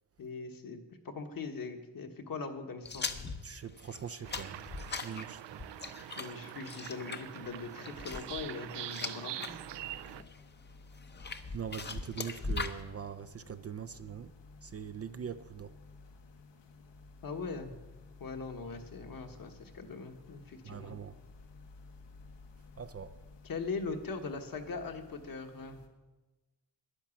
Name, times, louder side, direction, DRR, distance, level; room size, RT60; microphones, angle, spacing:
voice 1, 0.2-0.8 1.0-3.2 6.2-9.5 17.2-17.7 18.2-21.0 23.4-25.8, left 4 dB, 55° left, 5 dB, 1.4 m, -41 dB
sound 1, 2.8-9.5 9.9-10.4 11.0-12.8, left 4 dB, 25° left, 0.7 m, -40 dB
voice 2, 3.4-4.6 5.0-5.6 11.5-14.3 14.6-15.7 20.6-21.1 22.8-23.1, right 7 dB, 35° right, 11 dB, 0.4 m, -42 dB
sound 2, 4.2-10.2, right 13 dB, 85° right, 0.6 m, -44 dB
sound 3, 9.5-25.9, left 3 dB, 85° left, 1.6 m, -55 dB
11.0 x 10.5 x 7.1 m, 1.2 s
wide cardioid pair, 140°, 41 cm